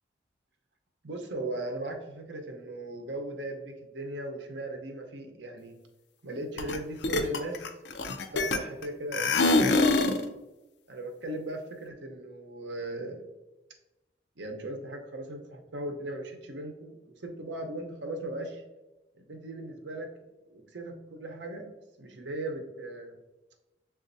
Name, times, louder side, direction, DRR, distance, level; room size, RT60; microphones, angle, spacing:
voice 1, 1.0-5.8 6.2-7.6 8.3-10.0 10.9-13.2 14.4-18.6 19.1-20.1 20.5-21.7 22.0-23.1, right 1 dB, 80° right, 3 dB, 0.7 m, -38 dB
sound 1, 6.6-6.8 7.0-8.8 9.1-10.2, left 3 dB, 75° left, 0.4 m, -24 dB
7.0 x 2.5 x 2.6 m, 1.0 s
head